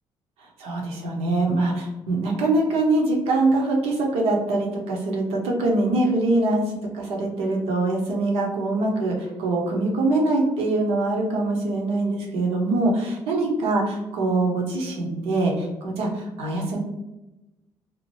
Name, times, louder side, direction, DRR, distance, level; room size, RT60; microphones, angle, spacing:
voice 1, 0.6-16.8, right 2 dB, 85° right, 0 dB, 0.8 m, -23 dB
2.8 x 2.1 x 3.1 m, 0.98 s
supercardioid pair, 70°, 10 cm